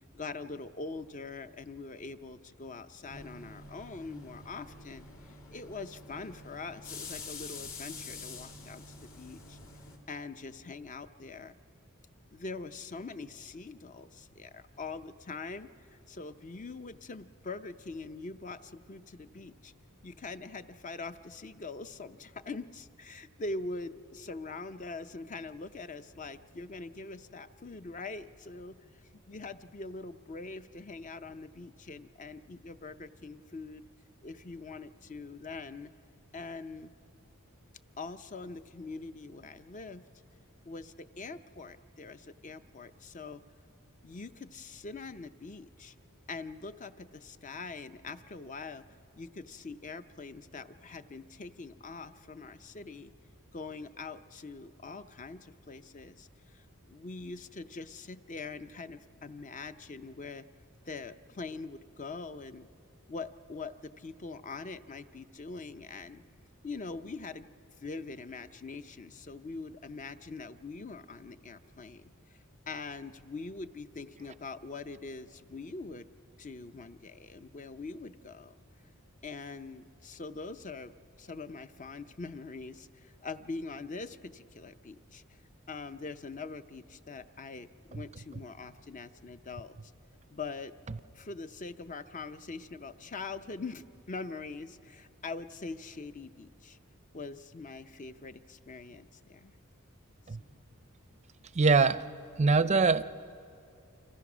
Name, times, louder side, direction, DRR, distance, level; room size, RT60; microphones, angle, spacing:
voice 1, 0.1-9.6 10.1-11.5 12.3-15.7 16.1-19.7 20.0-28.8 29.3-33.8 34.2-35.9 36.3-36.9 38.0-40.0 40.7-43.4 44.0-45.9 46.3-48.8 49.2-53.1 53.5-60.4 60.9-62.7 63.1-66.2 66.6-67.5 67.8-72.1 72.7-76.1 76.4-78.6 79.2-85.4 85.7-89.9 90.3-90.7 91.1-96.8 97.1-99.5 100.4-100.6, left 3 dB, 35° left, 11 dB, 0.6 m, -43 dB
sound 1, 3.1-10.0, left 3 dB, 65° left, 2.5 m, -46 dB
voice 2, 101.5-102.0 102.4-103.0, right 4 dB, 30° right, 14 dB, 0.5 m, -23 dB
29.5 x 26.0 x 6.2 m, 2.4 s
head